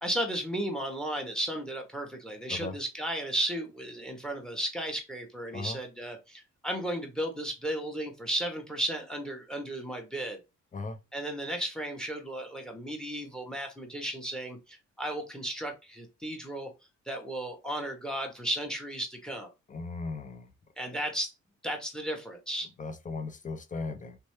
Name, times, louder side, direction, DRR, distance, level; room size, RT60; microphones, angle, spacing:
voice 1, 0.0-10.4 11.1-16.7 17.1-19.5 20.8-21.3 21.6-22.7, right 1 dB, ahead, 1.3 m, -34 dB
voice 2, 19.7-20.5 22.8-24.2, left 3 dB, 25° left, 0.8 m, -37 dB
3.3 x 2.9 x 3.2 m
cardioid pair, 90°, 30 cm